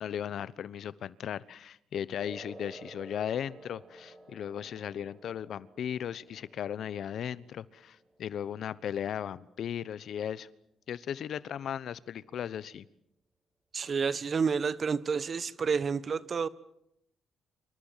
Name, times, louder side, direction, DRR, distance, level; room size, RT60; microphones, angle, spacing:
voice 1, 0.0-10.5 10.9-12.8, left 9 dB, 65° left, 1.0 m, -36 dB
sound 1, 2.2-9.2, right 2 dB, 25° right, 5.5 m, -52 dB
voice 2, 13.7-16.5, right 5 dB, 45° right, 1.3 m, -29 dB
27.0 x 26.0 x 7.5 m
cardioid pair, 90°, 0 cm